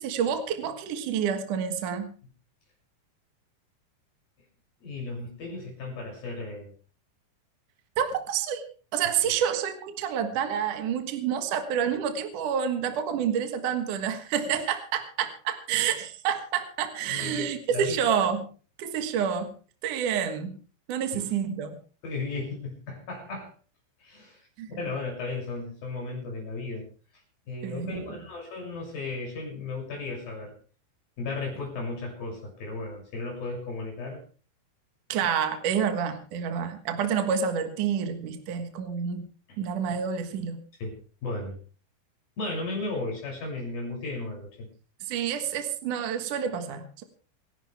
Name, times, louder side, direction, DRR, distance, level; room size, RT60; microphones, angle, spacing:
voice 1, 0.0-2.1 8.0-8.6 8.9-18.5 18.8-19.5 19.8-20.6 20.9-21.7 24.6-24.7 27.6-28.0 35.1-39.3 39.6-40.6 45.1-47.0, right 8 dB, 60° right, 7 dB, 2.6 m, -28 dB
voice 2, 4.8-6.7 9.2-9.3 17.1-18.1 21.1-21.2 22.0-23.5 24.0-24.4 24.7-26.9 27.5-30.5 31.2-34.2 39.5-39.6 40.8-41.6 42.4-44.7, left 3 dB, 55° left, 0 dB, 8.6 m, -35 dB
27.0 x 11.5 x 3.5 m, 0.39 s
omnidirectional pair, 4.9 m